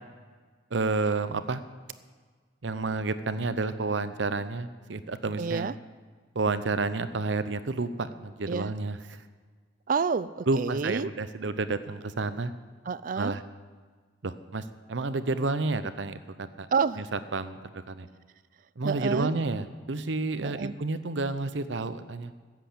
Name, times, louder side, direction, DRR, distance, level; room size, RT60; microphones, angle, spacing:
voice 1, 0.7-1.6 2.6-5.7 6.3-9.2 10.5-12.5 13.2-13.4 14.2-16.7 17.1-18.1 18.8-22.3, right 3 dB, 70° right, 12 dB, 0.7 m, -30 dB
voice 2, 5.4-5.7 8.5-8.7 9.9-11.1 12.9-13.4 16.7-17.0 18.8-19.3 20.4-20.7, right 5 dB, 45° right, 17 dB, 0.4 m, -29 dB
15.0 x 7.7 x 8.5 m, 1.5 s
head